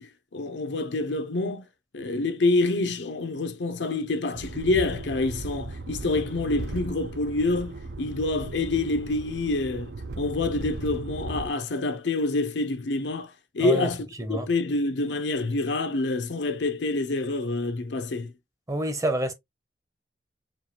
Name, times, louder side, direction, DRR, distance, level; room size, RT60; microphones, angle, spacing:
voice 1, 0.0-1.7 1.9-18.3, left 2 dB, 90° left, 0.7 m, -27 dB
sound 1, 4.3-11.5, right 3 dB, 75° right, 0.5 m, -37 dB
voice 2, 13.6-13.9 14.2-14.5 18.7-19.3, right 1 dB, 20° right, 0.6 m, -27 dB
4.5 x 2.4 x 2.8 m
head